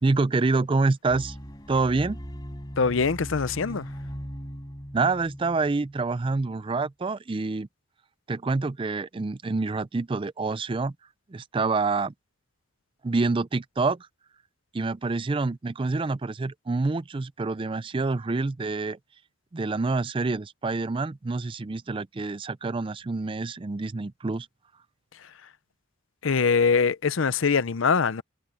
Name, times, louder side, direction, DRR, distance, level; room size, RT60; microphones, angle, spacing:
voice 1, 0.0-1.3 1.7-2.2 4.9-7.7 8.3-10.9 11.3-12.1 13.0-14.1 14.7-19.0 19.5-24.5, right 3 dB, 25° right, 0.4 m, -27 dB
sound 1, 1.1-6.4, equal, 20° left, 6.8 m, -39 dB
voice 2, 2.8-3.9 25.1-25.5 26.2-28.2, left 5 dB, 75° left, 0.7 m, -23 dB
head